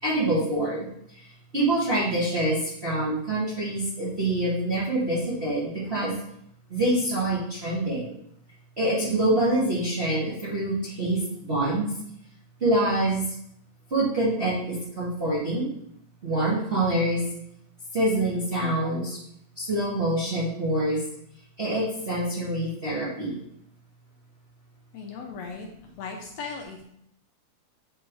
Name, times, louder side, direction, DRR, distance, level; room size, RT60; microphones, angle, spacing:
voice 1, 0.0-1.3 1.5-6.1 6.7-8.1 8.8-11.9 12.6-13.2 13.9-15.7 16.2-17.2 17.9-19.2 19.6-21.0 21.6-23.4, right 1 dB, 35° right, -8 dB, 1.0 m, -26 dB
voice 2, 24.9-25.7 26.0-26.8, left 5 dB, 75° left, 1 dB, 1.7 m, -37 dB
8.6 x 3.6 x 3.1 m, 0.72 s
omnidirectional pair, 3.3 m